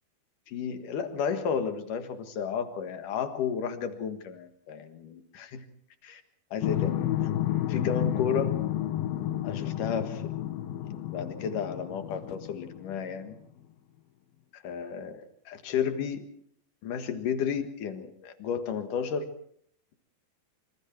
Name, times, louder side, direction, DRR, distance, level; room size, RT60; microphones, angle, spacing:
voice 1, 0.5-5.7 6.0-6.2 6.5-7.4 7.7-8.6 9.4-13.4 14.5-16.3 16.8-19.3, left 7 dB, 65° left, 8 dB, 3.0 m, -33 dB
sound 1, 6.6-13.2, left 12 dB, 80° left, 2.9 m, -31 dB
26.5 x 24.5 x 4.5 m, 0.64 s
omnidirectional pair, 4.3 m